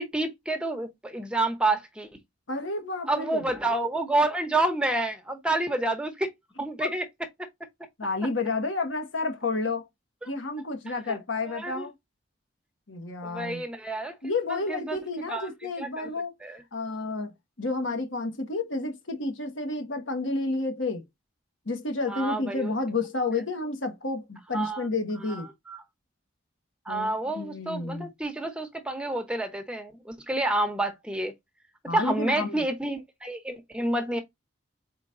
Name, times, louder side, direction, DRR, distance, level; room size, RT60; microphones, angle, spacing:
voice 1, 0.0-2.1 3.1-6.3 6.6-7.0 10.2-10.3 11.1-11.2 11.4-11.9 13.2-14.2 14.5-15.0 15.3-15.5 15.8-16.1 16.4-16.6 22.1-22.7 24.5-24.9 25.3-25.8 26.9-31.3 31.8-34.2, right 2 dB, 5° right, 0.9 m, -29 dB
voice 2, 2.5-3.4 6.8-6.9 8.0-9.9 10.2-11.9 12.9-13.6 14.2-16.3 16.7-17.3 17.6-21.0 21.6-25.5 26.9-28.1 31.9-32.6, left 3 dB, 80° left, 1.5 m, -30 dB
5.1 x 4.0 x 2.6 m
head